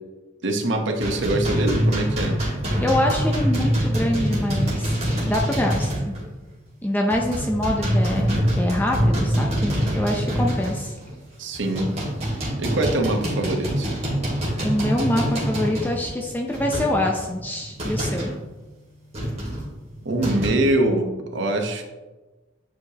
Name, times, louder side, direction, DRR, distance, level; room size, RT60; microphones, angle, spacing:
voice 1, 0.4-2.4 11.4-11.9 12.6-14.0 20.0-21.8, right 1 dB, 65° right, 3 dB, 1.0 m, -23 dB
sound 1, 1.0-6.3 6.5-6.7 7.1-11.1 11.5-18.4 19.1-20.5, equal, 35° right, 2.3 m, -25 dB
voice 2, 2.8-6.2 6.8-11.0 14.6-18.3, left 1 dB, 10° left, 0 dB, 0.5 m, -25 dB
9.2 x 4.9 x 2.8 m, 1.2 s
head